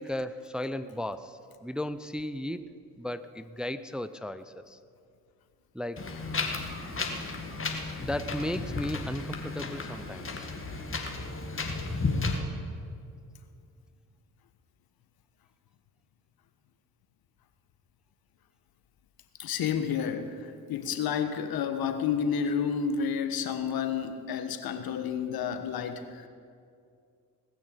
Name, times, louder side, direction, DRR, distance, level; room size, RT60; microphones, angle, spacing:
voice 1, 0.0-2.7 3.0-4.8 5.7-6.1 8.0-10.5 24.6-24.7, left 1 dB, ahead, 12 dB, 0.5 m, -35 dB
Wind, 6.0-12.4, left 3 dB, 35° left, 2.0 m, -33 dB
voice 2, 19.4-26.3, left 7 dB, 75° left, 9 dB, 1.2 m, -30 dB
19.0 x 6.5 x 8.1 m, 2.3 s
supercardioid pair, 70°, 37 cm